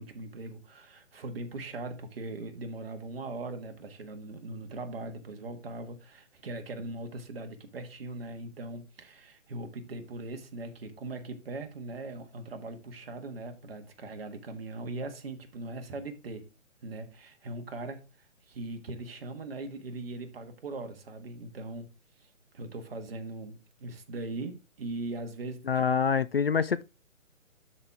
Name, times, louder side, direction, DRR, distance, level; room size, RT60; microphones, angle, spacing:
voice 1, 0.0-16.5 16.8-18.0 18.5-21.9 22.2-25.8, right 2 dB, 45° right, 1.7 m, -40 dB
voice 2, 25.7-26.8, left 6 dB, 50° left, 0.4 m, -26 dB
12.0 x 4.3 x 3.5 m
hypercardioid pair, 155°, 39 cm